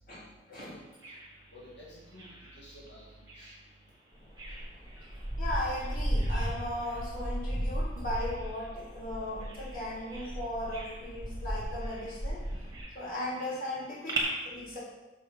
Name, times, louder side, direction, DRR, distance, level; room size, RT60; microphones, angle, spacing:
voice 1, 0.5-0.9 1.5-3.5, equal, 80° left, -7 dB, 1.8 m, -51 dB
Bird vocalization bird call bird song, 0.6-14.2, right 4 dB, 20° right, 1.6 m, -46 dB
sound 1, 4.3-12.8, equal, 30° left, 2.2 m, -35 dB
voice 2, 5.4-12.4 12.9-14.8, left 1 dB, 50° left, -8 dB, 2.8 m, -37 dB
6.8 x 4.9 x 5.7 m, 1.1 s
head